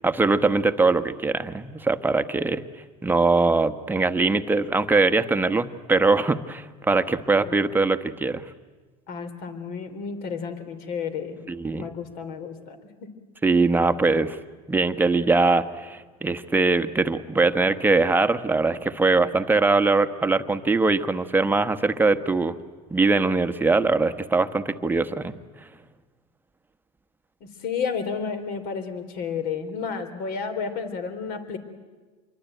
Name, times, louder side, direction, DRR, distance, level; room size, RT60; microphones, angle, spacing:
voice 1, 0.0-2.6 3.0-8.4 11.5-11.9 13.4-14.4 14.7-22.6 22.9-25.3, right 3 dB, 10° right, 10 dB, 1.2 m, -22 dB
voice 2, 9.1-11.4 11.7-13.1 27.6-31.6, left 6 dB, 55° left, 9 dB, 3.6 m, -31 dB
26.5 x 23.0 x 9.2 m, 1.3 s
supercardioid pair, 115°, 19 cm